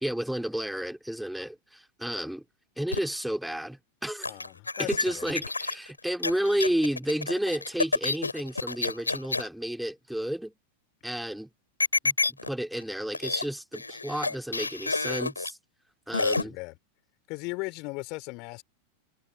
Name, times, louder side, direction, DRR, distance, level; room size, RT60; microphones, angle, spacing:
voice 1, 0.0-2.4 2.8-4.3 4.8-10.5 11.0-11.5 12.0-15.6 16.1-16.6, right 1 dB, ahead, 2.2 m, -31 dB
sound 1, 2.9-3.2 4.2-9.5 11.8-12.5 12.8-12.9 13.1-13.5 13.7-15.5 16.1-16.4, left 3 dB, 80° left, 3.6 m, -29 dB
voice 2, 4.3-5.4 16.1-16.8 17.3-18.6, left 28 dB, 45° left, 4.3 m, -38 dB
figure-of-eight pair, 90°, 0 cm